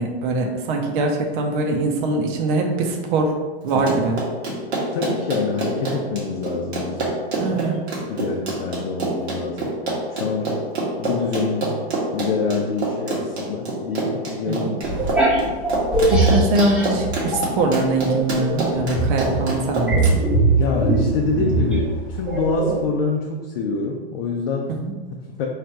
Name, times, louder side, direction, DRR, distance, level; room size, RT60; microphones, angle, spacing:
voice 1, 0.0-3.3 3.6-4.2 7.4-7.8 14.5-14.7 16.1-20.2 24.7-24.9, right 2 dB, 50° right, 3 dB, 0.8 m, -22 dB
Run, 3.7-20.1, right 2 dB, 85° right, 1.4 m, -26 dB
voice 2, 4.9-7.2 8.1-9.8 10.1-10.6 11.0-11.8 12.1-14.8 20.6-24.8 25.1-25.5, left 4 dB, 60° left, 0 dB, 0.6 m, -26 dB
sound 1, 14.8-17.7 18.1-22.8, right 2 dB, 5° right, 0.6 m, -21 dB
3.2 x 2.5 x 4.5 m, 1.2 s
hypercardioid pair, 130°, 31 cm